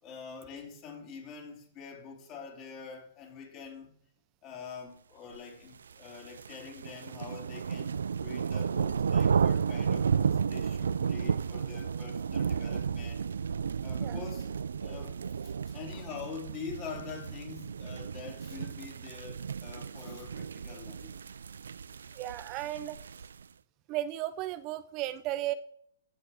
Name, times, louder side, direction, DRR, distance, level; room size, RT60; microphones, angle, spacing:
voice 1, 0.0-3.9 4.4-13.3 13.8-21.1, left 6 dB, 35° left, 3.4 m, -45 dB
sound 1, 5.9-23.4, right 6 dB, 85° right, 0.3 m, -33 dB
voice 2, 22.1-23.0 23.9-25.5, right 14 dB, 40° right, 0.6 m, -34 dB
15.0 x 5.6 x 4.4 m
hypercardioid pair, 125°, 0 cm